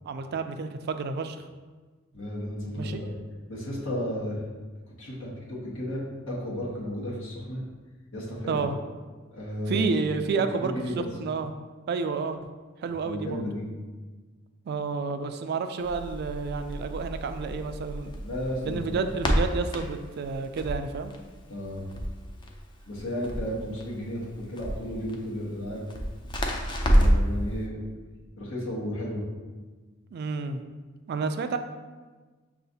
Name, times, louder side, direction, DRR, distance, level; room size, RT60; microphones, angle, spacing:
voice 1, 0.0-1.4 2.7-3.0 8.5-8.7 9.7-11.5 11.9-12.4 12.8-13.4 14.7-18.1 18.6-21.1 30.1-30.6 31.1-31.6, right 4 dB, 55° right, 8 dB, 0.3 m, -30 dB
voice 2, 2.1-3.1 3.5-4.4 5.0-7.6 8.1-8.6 9.3-9.9 10.5-11.0 13.0-13.7 18.2-19.1 21.5-21.8 22.9-25.8 26.2-26.3 26.9-27.8 28.4-29.2, equal, 75° left, -5 dB, 1.2 m, -33 dB
Crackle, 15.8-27.4, equal, 25° left, 0.4 m, -29 dB
6.6 x 2.4 x 2.7 m, 1.3 s
head